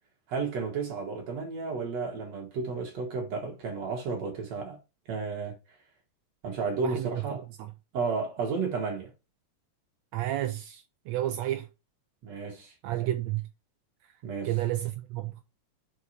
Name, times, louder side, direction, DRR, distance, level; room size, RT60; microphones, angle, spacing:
voice 1, 0.3-4.8 5.1-5.5 6.4-7.4 7.9-9.1 12.2-12.7 14.2-14.5, right 4 dB, 55° right, 2.9 m, -32 dB
voice 2, 6.8-7.7 10.1-11.7 12.8-13.4 14.0-14.1 14.4-15.4, right 14 dB, 85° right, 1.6 m, -31 dB
6.5 x 4.8 x 4.7 m
omnidirectional pair, 3.7 m